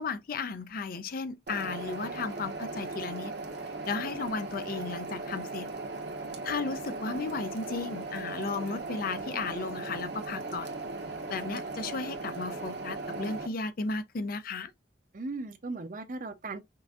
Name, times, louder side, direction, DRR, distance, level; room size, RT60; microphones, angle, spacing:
voice 1, 0.0-3.3 3.9-5.7 6.4-10.7 11.3-14.7, left 4 dB, 55° left, 0.5 m, -34 dB
sound 1, 1.5-13.5, right 3 dB, 70° right, 1.2 m, -38 dB
voice 2, 6.8-7.2 15.1-16.6, right 3 dB, 50° right, 0.7 m, -38 dB
5.4 x 2.6 x 2.4 m
head